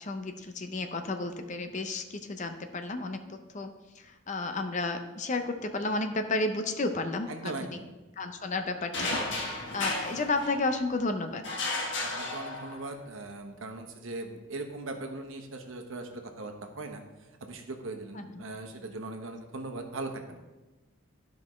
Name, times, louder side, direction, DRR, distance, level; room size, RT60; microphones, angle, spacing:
voice 1, 0.0-3.7 4.0-7.8 8.2-11.4 18.1-18.4, left 2 dB, 40° left, 7 dB, 0.6 m, -32 dB
voice 2, 7.3-7.9 12.0-17.0 17.4-20.4, right 2 dB, 85° right, 4 dB, 1.0 m, -39 dB
sound 1, 8.9-10.9 11.4-13.0, left 2 dB, 65° left, 1.4 m, -34 dB
12.0 x 5.2 x 3.1 m, 1.1 s
head